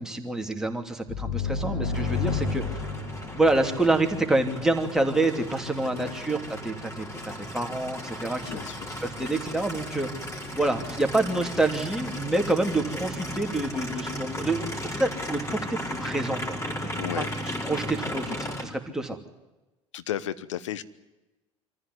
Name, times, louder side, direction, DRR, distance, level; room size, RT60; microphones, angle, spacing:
voice 1, 0.0-2.8 3.3-8.6 9.0-10.1 10.5-16.7 17.2-17.3 17.6-19.2, right 2 dB, 5° right, 3 dB, 3.0 m, -27 dB
sound 1, 1.1-4.7, left 4 dB, 55° left, 4.7 m, -31 dB
Aircraft, 1.9-18.6, equal, 20° left, 4.5 m, -36 dB
voice 2, 17.0-17.3 19.9-20.8, left 11 dB, 75° left, 13 dB, 1.0 m, -33 dB
24.5 x 15.0 x 9.7 m, 1.1 s
figure-of-eight pair, 70°, 16 cm